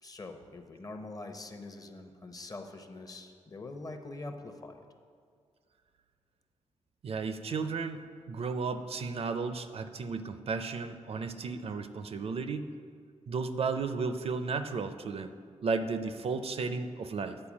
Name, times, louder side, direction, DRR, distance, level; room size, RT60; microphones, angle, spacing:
voice 1, 0.0-4.9, left 2 dB, 30° left, 6 dB, 0.7 m, -44 dB
voice 2, 7.0-12.7 13.3-15.3 15.6-17.4, right 4 dB, 55° right, 10 dB, 0.4 m, -34 dB
8.7 x 4.6 x 7.1 m, 2.1 s
wide cardioid pair, 105°, 12 cm